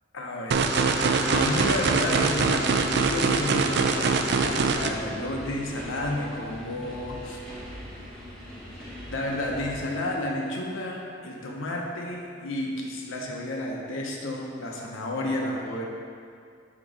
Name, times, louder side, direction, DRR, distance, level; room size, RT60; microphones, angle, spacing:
voice 1, 0.1-7.4 9.1-15.9, left 1 dB, 80° left, -1 dB, 0.8 m, -31 dB
sound 1, 0.5-4.9, right 4 dB, 55° right, 0.4 m, -23 dB
sound 2, 0.8-9.8, equal, 5° left, 1.0 m, -39 dB
7.3 x 3.0 x 5.0 m, 2.3 s
head